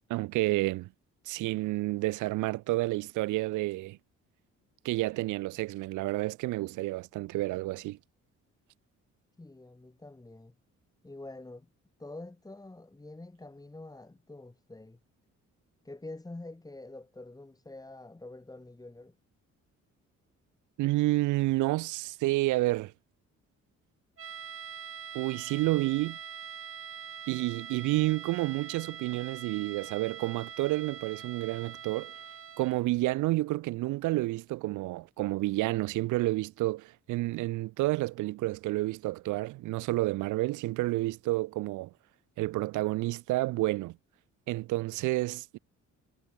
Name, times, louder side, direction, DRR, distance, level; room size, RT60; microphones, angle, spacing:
voice 1, 0.1-0.9 1.3-4.0 4.8-8.0 20.8-22.9 25.1-26.2 27.3-32.1 32.6-41.9 42.4-44.0 44.5-45.6, right 19 dB, 80° right, 0.5 m, -30 dB
voice 2, 9.4-10.5 11.0-11.7 12.0-15.0 15.8-19.2, left 2 dB, 10° left, 1.7 m, -46 dB
sound 1, 24.2-32.9, right 7 dB, 45° right, 2.2 m, -44 dB
cardioid pair, 90°, 30 cm